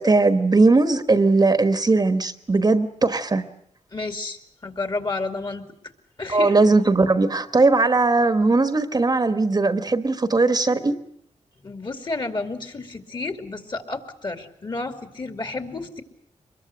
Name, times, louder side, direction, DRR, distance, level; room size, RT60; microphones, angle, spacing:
voice 1, 0.0-3.5 6.3-11.0, right 3 dB, 30° right, 10 dB, 1.2 m, -19 dB
voice 2, 3.9-5.6 6.2-6.6 11.6-16.0, left 3 dB, 40° left, 7 dB, 2.6 m, -31 dB
24.0 x 22.0 x 7.8 m, 0.69 s
cardioid pair, 85°, 12 cm